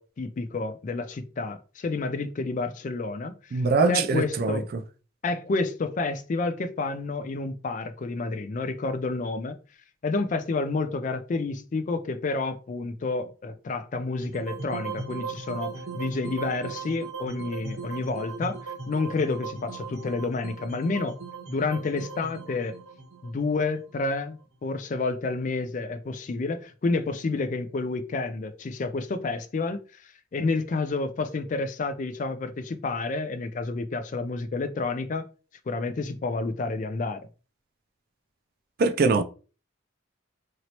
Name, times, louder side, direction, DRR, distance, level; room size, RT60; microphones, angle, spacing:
voice 1, 0.0-3.6 3.9-4.7 5.2-9.6 10.0-21.2 21.5-22.8 23.2-30.0 30.3-35.3 35.7-37.2, left 3 dB, 40° left, 0.3 m, -29 dB
voice 2, 3.5-4.6 38.8-39.2, right 4 dB, 45° right, 0.3 m, -22 dB
sound 1, 14.2-24.4, right 4 dB, 85° right, 0.8 m, -38 dB
3.0 x 2.9 x 2.8 m
head